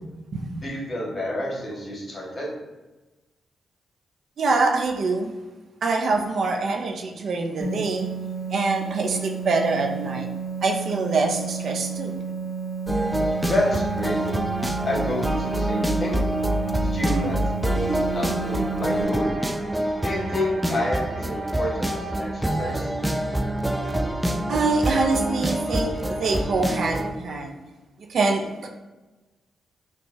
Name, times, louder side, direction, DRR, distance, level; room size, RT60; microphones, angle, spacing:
voice 1, 0.6-2.5 13.5-14.2 14.8-16.2 16.9-19.3 20.0-22.9, left 1 dB, 45° left, -4 dB, 1.4 m, -29 dB
voice 2, 4.4-5.3 5.8-8.1 8.5-10.3 10.6-12.1 24.5-27.5 28.1-28.7, right 3 dB, 65° right, 3 dB, 0.5 m, -24 dB
sound 1, 7.6-19.0, right 6 dB, 35° right, 0.8 m, -32 dB
sound 2, 12.9-27.1, right 1 dB, 10° right, 0.4 m, -26 dB
5.4 x 2.2 x 2.7 m, 1.1 s
supercardioid pair, 55°, 0 cm